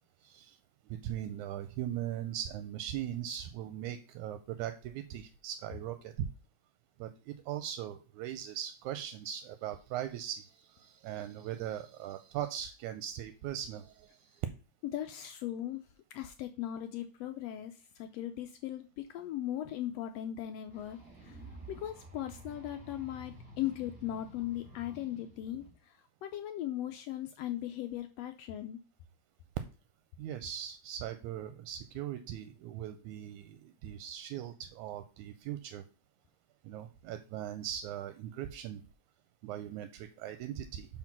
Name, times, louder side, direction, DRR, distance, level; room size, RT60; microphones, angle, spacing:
voice 1, 0.2-0.6 0.9-6.3 7.0-14.5 30.2-35.8 36.6-38.8 39.4-40.9, right 11 dB, 85° right, 9 dB, 2.0 m, -40 dB
voice 2, 14.9-15.8 16.1-21.4 21.7-28.8, left 12 dB, 80° left, 7 dB, 1.5 m, -38 dB
sound 1, 20.7-25.7, right 2 dB, 25° right, 1.4 m, -51 dB
5.8 x 4.5 x 5.9 m, 0.34 s
omnidirectional pair, 3.5 m